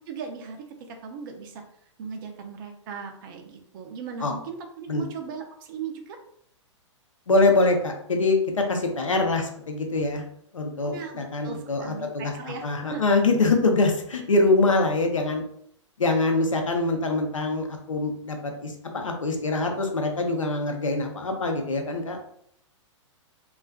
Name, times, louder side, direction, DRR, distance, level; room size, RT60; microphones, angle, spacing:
voice 1, 0.0-1.6 2.0-6.2 10.9-13.2, right 6 dB, 40° right, 4 dB, 0.5 m, -38 dB
voice 2, 7.3-10.2 10.5-15.4 16.0-22.2, left 3 dB, 85° left, 3 dB, 0.6 m, -24 dB
2.4 x 2.3 x 2.2 m, 0.68 s
figure-of-eight pair, 115°, 16 cm